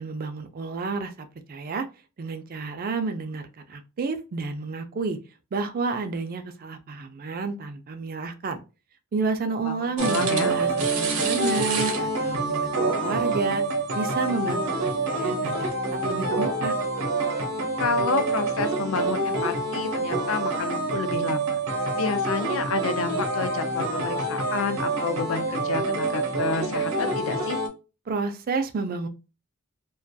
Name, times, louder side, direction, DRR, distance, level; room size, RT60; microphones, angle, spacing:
voice 1, 0.0-1.9 2.2-5.2 5.5-8.6 9.1-13.6 13.9-16.8 28.1-29.1, right 4 dB, 45° right, 0.3 m, -30 dB
voice 2, 9.6-10.6 17.8-27.6, left 5 dB, 70° left, 0.4 m, -30 dB
sound 1, 10.0-27.7, right 2 dB, 85° right, 0.6 m, -26 dB
2.2 x 2.2 x 2.6 m
head